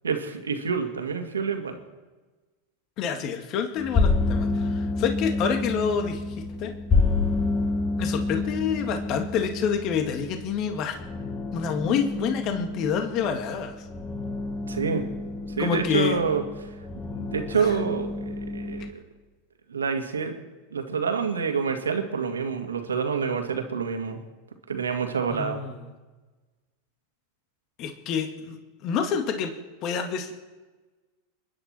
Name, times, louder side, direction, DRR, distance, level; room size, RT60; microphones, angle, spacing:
voice 1, 0.0-1.8 14.7-15.0 15.6-16.4 17.1-19.0 19.7-20.3 20.7-24.2 24.7-25.6, right 6 dB, 85° right, 5 dB, 2.0 m, -27 dB
voice 2, 3.0-6.7 8.0-11.0 11.5-13.8 15.6-16.2 17.5-17.8 25.4-25.8 27.8-28.6 28.8-29.5 29.8-30.3, left 7 dB, 45° left, 5 dB, 1.8 m, -28 dB
sound 1, 3.8-18.9, left 3 dB, 25° left, 1.9 m, -29 dB
28.5 x 10.0 x 4.4 m, 1.3 s
hypercardioid pair, 90°, 0 cm